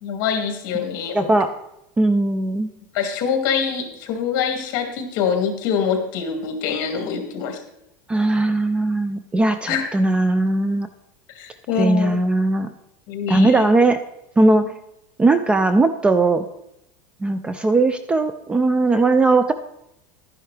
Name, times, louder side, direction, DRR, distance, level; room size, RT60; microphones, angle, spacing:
voice 1, 0.0-1.3 2.9-7.6 9.7-9.8 11.3-12.1 13.1-13.6, left 7 dB, 45° left, 4 dB, 2.1 m, -24 dB
voice 2, 1.1-1.5 2.0-2.7 8.1-10.9 11.8-12.7 13.3-14.0 14.4-14.7 15.2-16.4 17.2-19.5, right 2 dB, 10° right, 11 dB, 0.3 m, -18 dB
12.0 x 10.0 x 3.3 m, 0.83 s
supercardioid pair, 150°, 10 cm